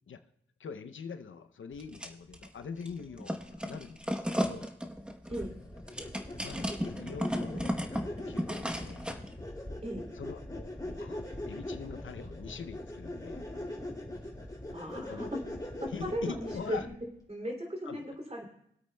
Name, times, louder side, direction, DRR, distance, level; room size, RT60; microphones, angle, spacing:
voice 1, 0.6-4.7 6.4-9.1 10.1-11.2 11.5-13.4 15.1-15.3 15.9-16.9 17.9-18.1, left 6 dB, 75° left, 10 dB, 0.6 m, -43 dB
sound 1, 1.7-2.5 2.8-9.3, equal, 5° right, 1.0 m, -35 dB
sound 2, 5.3-17.0, left 1 dB, 20° left, 2.7 m, -41 dB
voice 2, 14.7-15.3 15.8-16.8 17.3-18.5, equal, 30° right, 1 dB, 2.7 m, -36 dB
22.0 x 8.3 x 2.2 m, 0.72 s
cardioid pair, 50°, 20 cm